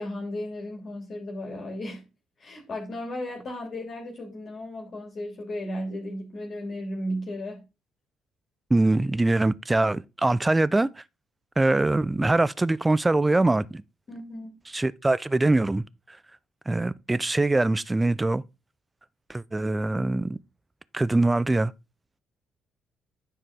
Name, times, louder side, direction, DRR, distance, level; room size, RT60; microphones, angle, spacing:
voice 1, 0.0-2.1 2.4-7.7 14.1-14.6, left 1 dB, 45° left, 2.7 m, -35 dB
voice 2, 8.7-10.9 11.6-13.8 14.7-16.2 16.7-18.4 19.3-20.4 20.9-21.7, right 2 dB, 15° right, 0.5 m, -23 dB
10.0 x 4.7 x 3.6 m
figure-of-eight pair, 45°, 0 cm